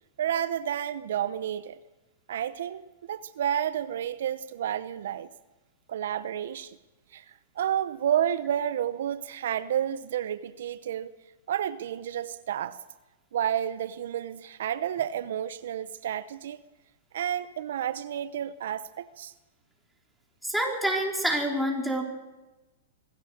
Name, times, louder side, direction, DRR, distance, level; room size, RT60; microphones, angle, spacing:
voice 1, 0.2-1.8 2.3-5.3 5.9-6.8 7.1-7.2 7.6-11.1 11.5-12.8 13.3-16.6 17.1-19.3, right 10 dB, 70° right, 13 dB, 0.8 m, -30 dB
voice 2, 20.4-22.0, right 1 dB, ahead, 0 dB, 4.3 m, -27 dB
24.5 x 16.5 x 6.6 m, 1.1 s
hypercardioid pair, 130°, 0 cm